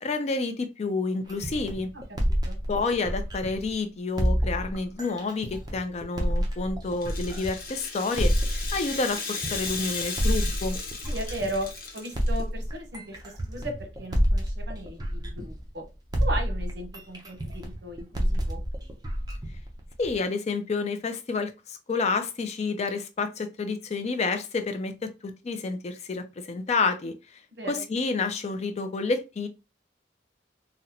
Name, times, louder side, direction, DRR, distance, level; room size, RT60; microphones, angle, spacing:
voice 1, 0.0-1.9 2.7-8.3 8.7-10.8 20.0-27.4 27.7-29.5, left 4 dB, 35° left, 0.4 m, -29 dB
sound 1, 1.3-3.7 4.2-7.7 8.2-11.7 12.1-15.8 16.1-20.2, equal, 20° right, 0.6 m, -28 dB
voice 2, 1.9-2.6 11.1-11.7 11.9-15.8 16.2-18.6 27.5-27.8, right 1 dB, 65° right, 1.0 m, -36 dB
Rattle (instrument), 6.9-12.4, left 4 dB, 55° left, 0.9 m, -36 dB
3.8 x 2.1 x 2.8 m
head